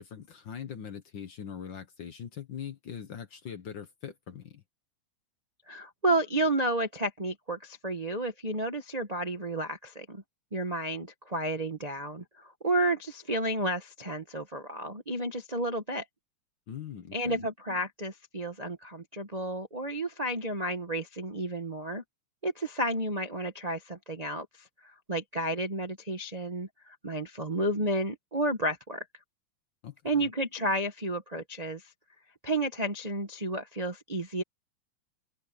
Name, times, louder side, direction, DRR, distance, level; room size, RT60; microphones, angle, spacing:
voice 1, 0.0-4.6 16.7-17.4 29.8-30.3, left 8 dB, 55° left, 1.4 m, -42 dB
voice 2, 5.7-10.2 10.5-16.0 17.1-22.0 22.4-24.5 24.8-29.0 30.0-31.8 32.4-34.4, right 1 dB, 75° right, 0.3 m, -31 dB
omnidirectional pair, 3.3 m